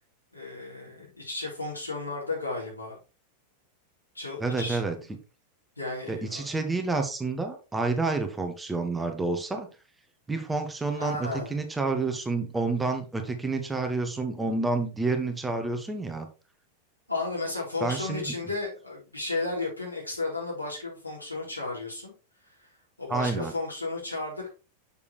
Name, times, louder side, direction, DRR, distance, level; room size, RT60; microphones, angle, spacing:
voice 1, 0.3-3.0 4.1-5.1 5.8-6.5 10.9-11.6 17.1-22.1 23.0-24.5, left 3 dB, 85° left, -4 dB, 3.9 m, -34 dB
voice 2, 4.4-4.9 6.1-9.7 10.3-16.3 17.8-18.3 23.1-23.5, right 3 dB, 10° right, 5 dB, 1.3 m, -29 dB
6.9 x 6.9 x 3.2 m, 0.31 s
figure-of-eight pair, 90°, 0 cm